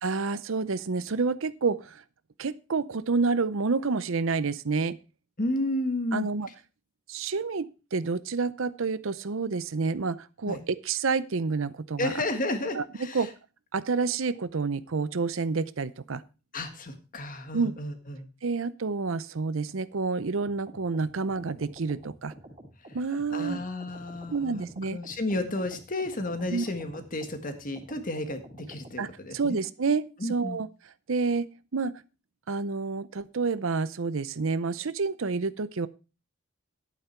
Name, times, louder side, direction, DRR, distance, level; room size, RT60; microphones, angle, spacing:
voice 1, 0.0-2.0 2.4-5.0 6.1-6.5 7.1-12.1 12.7-12.8 13.1-13.3 13.7-16.2 17.5-17.7 18.4-22.3 22.9-23.6 24.3-25.0 26.5-26.7 29.0-29.1 29.3-30.7 31.1-31.5 31.7-31.9 32.5-35.9, right 4 dB, 65° right, 16 dB, 0.6 m, -29 dB
voice 2, 5.4-6.3 10.5-10.6 12.0-13.3 16.5-18.3 23.3-29.6 30.2-30.6, left 2 dB, 40° left, 8 dB, 1.7 m, -32 dB
sound 1, 20.4-29.1, right 1 dB, 30° right, 2.8 m, -49 dB
11.0 x 8.9 x 4.5 m, 0.32 s
head